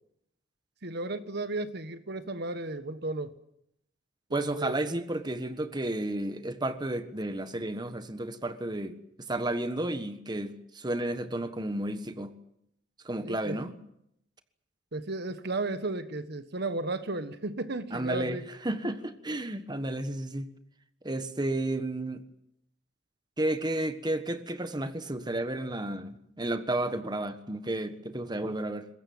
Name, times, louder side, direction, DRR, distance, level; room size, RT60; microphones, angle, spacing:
voice 1, 0.8-3.3 4.3-4.8 13.2-13.6 14.9-18.4, right 2 dB, 55° right, 1.4 m, -34 dB
voice 2, 4.3-8.9 9.3-12.3 13.0-13.7 17.9-20.5 21.0-22.2 23.4-28.9, right 1 dB, 20° right, 1.4 m, -32 dB
22.5 x 20.5 x 9.4 m
head